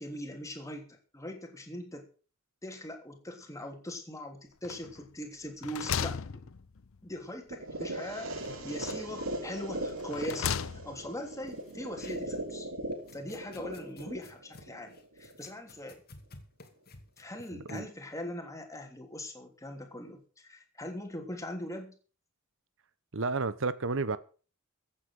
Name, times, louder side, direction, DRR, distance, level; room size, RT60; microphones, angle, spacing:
voice 1, 0.0-2.1 2.6-6.2 7.0-10.6 10.8-12.7 13.1-16.0 17.2-22.0, left 1 dB, 15° left, 3.1 m, -41 dB
sound 1, 4.6-5.1 5.5-7.1 8.3-9.2 9.9-11.1, left 7 dB, 70° left, 0.6 m, -36 dB
sound 2, 7.5-15.5, right 1 dB, 80° right, 2.5 m, -39 dB
sound 3, 8.9-9.0 9.2-9.3 11.5-12.5 12.9-17.9, left 3 dB, 50° left, 2.5 m, -54 dB
voice 2, 17.5-17.9 23.1-24.2, right 3 dB, 65° right, 1.0 m, -31 dB
15.0 x 8.6 x 6.5 m
head